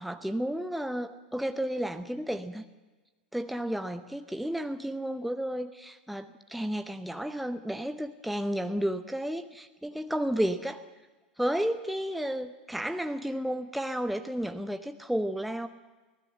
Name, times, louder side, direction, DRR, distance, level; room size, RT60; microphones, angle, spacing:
voice 1, 0.0-2.6 3.3-10.8 11.4-15.7, equal, ahead, 8 dB, 0.8 m, -32 dB
24.0 x 17.5 x 7.8 m, 1.2 s
figure-of-eight pair, 90°, 5 cm